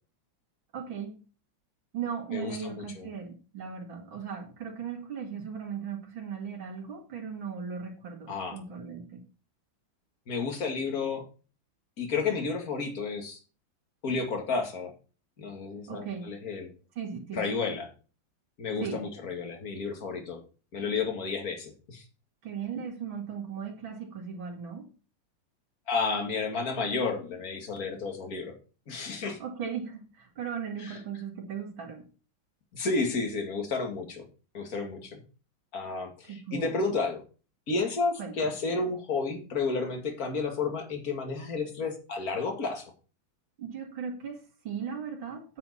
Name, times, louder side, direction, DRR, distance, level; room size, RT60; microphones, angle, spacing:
voice 1, 0.7-1.2 1.9-9.3 15.9-16.4 16.9-17.5 18.8-19.1 22.4-24.9 29.4-32.0 36.3-36.7 38.2-38.5 43.6-45.6, right 6 dB, 80° right, 1 dB, 3.0 m, -37 dB
voice 2, 2.3-3.1 8.3-8.6 10.3-11.2 12.0-13.4 14.0-14.9 15.4-16.7 17.3-17.9 18.6-20.4 20.7-22.0 25.9-28.5 28.9-29.4 32.7-34.3 34.5-35.2 35.7-37.2 37.7-42.9, left 4 dB, 45° left, 3 dB, 2.5 m, -31 dB
9.4 x 7.6 x 4.2 m, 0.35 s
omnidirectional pair, 2.1 m